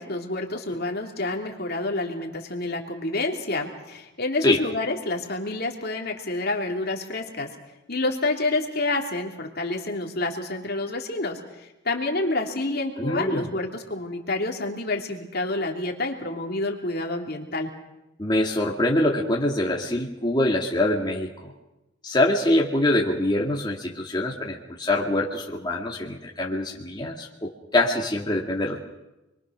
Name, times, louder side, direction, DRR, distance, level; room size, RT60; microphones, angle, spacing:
voice 1, 0.0-7.5 7.9-17.7, left 2 dB, 50° left, 2 dB, 3.1 m, -28 dB
voice 2, 13.0-13.5 18.2-21.5 22.0-28.8, left 1 dB, 20° left, -1 dB, 2.3 m, -24 dB
29.0 x 23.0 x 6.4 m, 0.95 s
head